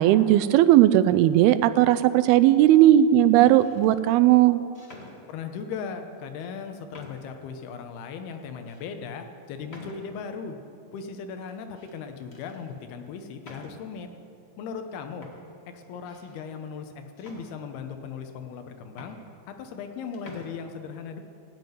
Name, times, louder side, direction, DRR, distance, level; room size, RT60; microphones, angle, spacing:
voice 1, 0.0-4.6, right 13 dB, 85° right, 14 dB, 2.5 m, -17 dB
sound 1, 2.1-2.5 3.3-3.9 4.7-5.7 6.4-6.5 6.9-7.5 8.0-8.1 8.7-8.9 9.7-10.4 11.5-12.0 12.3-12.6 13.4-14.0 14.8-14.9 15.2-16.5 17.2-18.0 18.6-18.7 18.9-19.9 20.1-20.5, left 2 dB, 35° left, 0.9 m, -48 dB
voice 2, 5.3-10.6 10.9-14.1 14.6-15.3 15.7-19.2 19.5-21.2, left 6 dB, 85° left, 6 dB, 3.0 m, -37 dB
17.0 x 7.7 x 9.3 m, 2.5 s
omnidirectional pair, 4.4 m